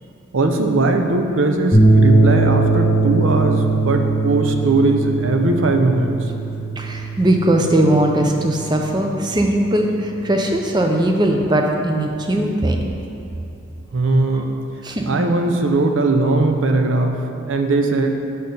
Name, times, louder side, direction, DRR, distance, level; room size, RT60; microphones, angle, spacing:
voice 1, 0.3-6.1 13.9-14.5 15.1-17.2 17.5-18.2, right 2 dB, 65° right, 4 dB, 0.6 m, -19 dB
sound 1, 1.7-10.2, right 2 dB, 15° left, 1.2 m, -20 dB
voice 2, 6.8-12.8 14.3-14.5 14.8-15.2, right 1 dB, 20° right, 2 dB, 0.5 m, -19 dB
6.4 x 4.5 x 5.3 m, 2.9 s
head